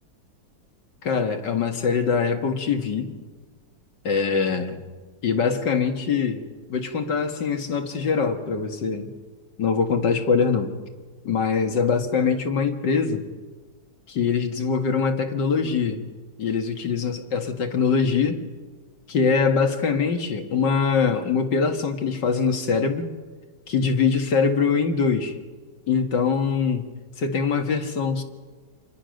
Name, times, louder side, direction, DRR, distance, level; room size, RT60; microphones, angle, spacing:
voice 1, 1.0-3.1 4.0-4.8 5.2-6.4 6.7-9.1 9.6-10.7 11.2-13.3 14.1-16.0 16.4-18.4 19.1-23.1 23.7-25.3 25.9-26.9 27.2-28.2, left 5 dB, 65° left, 6 dB, 2.3 m, -23 dB
28.0 x 21.5 x 6.5 m, 1.4 s
omnidirectional pair, 2.1 m